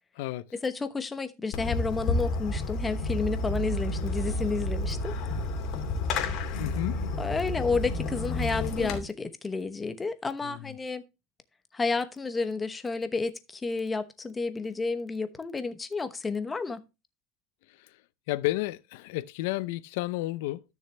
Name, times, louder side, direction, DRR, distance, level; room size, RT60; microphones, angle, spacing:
voice 1, 0.5-5.2 7.2-11.0 11.7-16.8, left 4 dB, 15° left, 1.0 m, -31 dB
Fireworks, 1.5-9.0, left 2 dB, 55° left, 2.7 m, -30 dB
voice 2, 6.6-7.0 10.4-10.7 18.3-20.6, left 18 dB, 80° left, 0.6 m, -31 dB
13.0 x 6.5 x 3.3 m
supercardioid pair, 135°, 0 cm